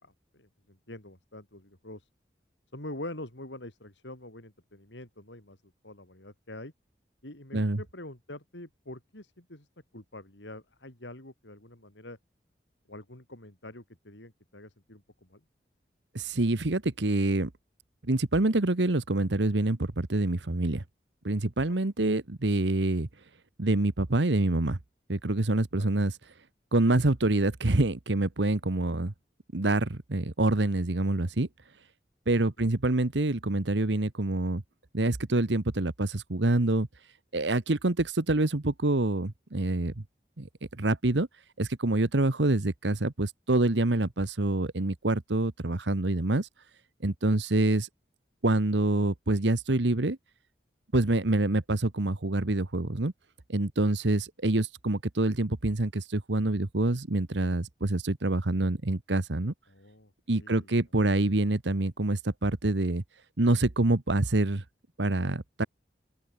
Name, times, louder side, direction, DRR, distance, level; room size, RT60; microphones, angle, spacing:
voice 1, 0.0-2.1 2.7-6.7 7.2-9.7 9.9-12.2 12.9-15.4 21.7-21.8 25.8-25.9 32.4-32.7 59.7-60.7, left 1 dB, 90° left, 5.4 m, -45 dB
voice 2, 16.1-17.5 18.1-20.8 21.2-23.1 23.6-24.8 25.1-26.2 26.7-29.1 29.5-31.5 32.3-34.6 34.9-36.9 37.3-40.0 40.4-40.5 40.8-41.3 41.6-46.5 47.0-47.9 48.4-50.2 50.9-53.1 53.5-59.5 60.3-63.0 63.4-64.6 65.0-65.7, right 2 dB, 85° right, 1.3 m, -26 dB
open air
head